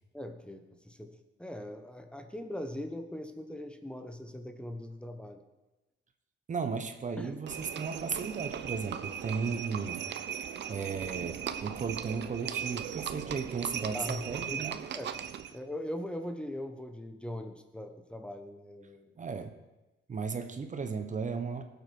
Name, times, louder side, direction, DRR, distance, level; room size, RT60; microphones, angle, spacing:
voice 1, 0.1-5.4 7.2-7.4 10.8-10.9 13.9-14.6 14.9-15.1 15.5-19.1, left 1 dB, 5° left, 6 dB, 1.1 m, -41 dB
voice 2, 6.5-10.0 10.7-14.8 19.2-19.6 20.1-21.6, right 5 dB, 40° right, 8 dB, 1.2 m, -35 dB
Livestock farm animals working animals, 7.5-15.6, right 9 dB, 60° right, 0.8 m, -38 dB
18.5 x 8.3 x 4.7 m, 1.1 s
cardioid pair, 90°, 20 cm